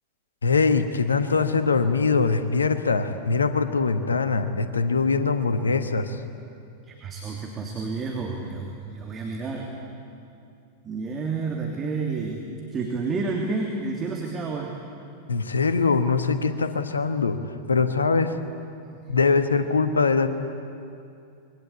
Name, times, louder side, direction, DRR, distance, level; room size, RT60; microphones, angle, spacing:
voice 1, 0.4-6.2 15.3-17.4 17.7-18.3 19.1-20.3, left 4 dB, 75° left, 10 dB, 1.4 m, -22 dB
voice 2, 6.9-9.7 10.8-14.7 18.9-19.0, right 4 dB, 25° right, 0 dB, 3.0 m, -30 dB
26.0 x 22.0 x 8.5 m, 2.5 s
figure-of-eight pair, 90°, 0 cm